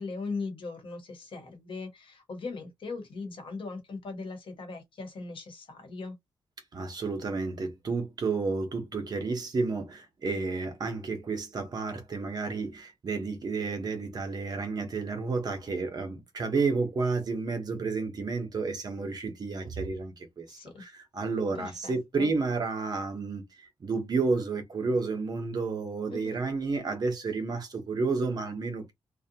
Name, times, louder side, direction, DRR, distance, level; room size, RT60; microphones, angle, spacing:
voice 1, 0.0-6.1 20.5-20.8 21.5-22.3 26.1-26.4, left 4 dB, 65° left, 1.1 m, -39 dB
voice 2, 6.7-28.9, right 4 dB, 45° right, 0.8 m, -31 dB
2.7 x 2.1 x 2.8 m
wide cardioid pair, 160°, 10 cm